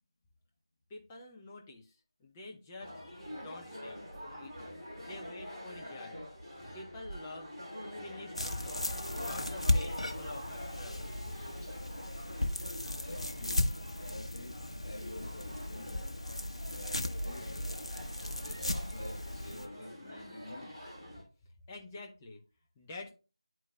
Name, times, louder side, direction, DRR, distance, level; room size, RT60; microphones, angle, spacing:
voice 1, 0.9-3.0 3.3-6.2 6.7-7.5 8.0-11.1 21.7-22.4 22.8-23.1, left 2 dB, 10° left, 0.5 m, -48 dB
sound 1, 2.8-21.2, equal, 25° right, 2.9 m, -45 dB
sound 2, 8.4-19.7, left 1 dB, 80° left, 0.9 m, -36 dB
voice 2, 13.0-16.1 16.7-20.7 21.9-22.0, left 1 dB, 50° left, 2.8 m, -49 dB
12.0 x 4.5 x 2.2 m
figure-of-eight pair, 165°, 3 cm